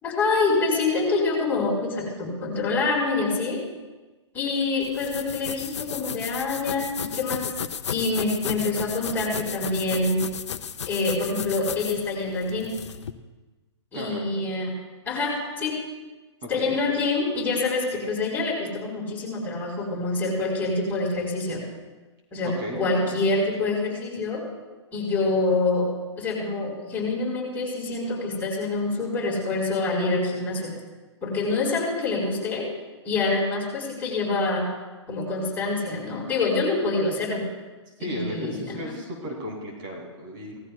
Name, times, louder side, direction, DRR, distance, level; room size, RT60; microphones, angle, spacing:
voice 1, 0.0-3.6 4.3-7.4 7.9-10.2 10.8-12.7 13.9-14.7 15.0-15.7 16.5-21.6 22.3-24.4 24.9-25.9 26.2-30.7 31.2-32.7 33.0-34.7 35.1-37.4 38.0-38.9, left 3 dB, 10° left, -6 dB, 4.6 m, -26 dB
sound 1, 4.8-13.1, left 7 dB, 70° left, 0.8 m, -34 dB
voice 2, 13.9-14.3 16.4-16.8 22.4-22.8 37.9-40.6, equal, 45° right, -1 dB, 2.8 m, -35 dB
18.0 x 15.0 x 2.4 m, 1.2 s
hypercardioid pair, 130°, 15 cm